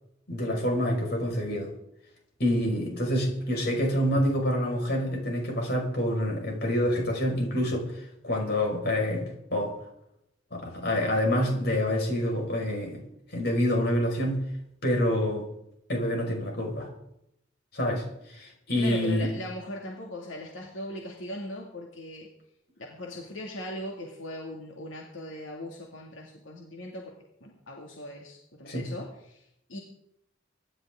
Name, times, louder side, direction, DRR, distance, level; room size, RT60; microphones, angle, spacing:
voice 1, 0.3-1.7 2.4-9.7 10.5-13.0 13.3-14.4 14.8-15.4 15.9-16.9 17.7-19.3 28.6-28.9, equal, 55° left, 1 dB, 5.5 m, -27 dB
voice 2, 18.7-22.3 22.8-27.1 27.4-29.8, left 1 dB, 85° left, 0 dB, 2.3 m, -39 dB
24.0 x 11.5 x 3.8 m, 0.77 s
head